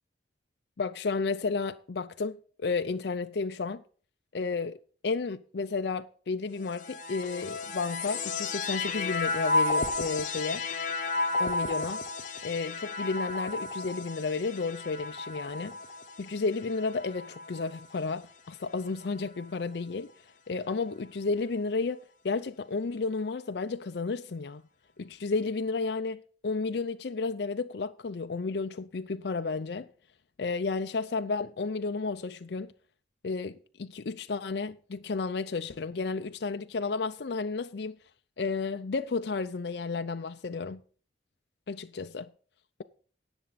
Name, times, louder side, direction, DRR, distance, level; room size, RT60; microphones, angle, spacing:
voice 1, 0.8-3.8 4.3-10.6 11.4-12.0 12.4-15.8 16.2-20.1 20.5-24.6 25.0-29.9 30.4-32.7 33.2-38.0 38.4-40.8 41.7-42.3, left 4 dB, 60° left, 0.5 m, -32 dB
sound 1, 6.6-18.1 18.9-19.6, left 3 dB, 45° left, 0.9 m, -33 dB
18.0 x 7.0 x 4.1 m
head